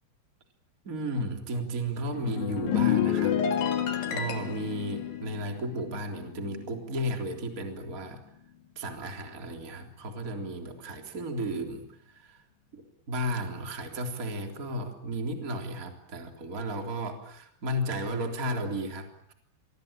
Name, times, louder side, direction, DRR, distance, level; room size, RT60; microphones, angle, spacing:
voice 1, 0.8-3.7 4.1-8.2 8.8-12.4 12.7-19.3, right 1 dB, 20° right, 3 dB, 3.5 m, -34 dB
sound 1, 2.1-6.8 7.0-7.4, left 9 dB, 75° left, 4.3 m, -29 dB
27.5 x 23.5 x 8.9 m, 0.71 s
omnidirectional pair, 4.9 m